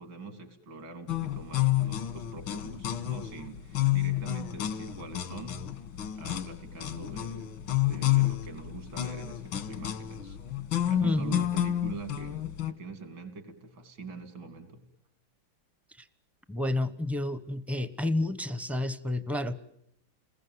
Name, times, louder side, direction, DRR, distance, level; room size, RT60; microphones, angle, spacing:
voice 1, 0.0-5.7 6.1-10.4 10.8-14.9, right 3 dB, 75° right, 7 dB, 3.9 m, -44 dB
sound 1, 1.1-12.7, left 12 dB, 90° left, 2.1 m, -30 dB
voice 2, 11.0-11.4 16.5-19.6, left 1 dB, ahead, 13 dB, 0.4 m, -30 dB
29.5 x 20.5 x 9.5 m, 0.75 s
omnidirectional pair, 2.1 m